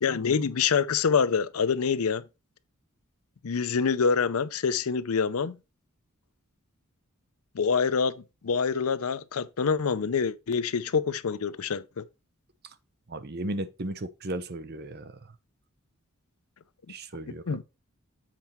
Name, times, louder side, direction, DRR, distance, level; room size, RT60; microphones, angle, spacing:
voice 1, 0.0-2.2 3.4-5.6 7.5-12.0 17.5-17.6, left 6 dB, 75° left, 0.5 m, -26 dB
voice 2, 13.1-15.2 16.9-17.6, right 1 dB, 45° right, 0.7 m, -35 dB
7.6 x 4.6 x 4.4 m
head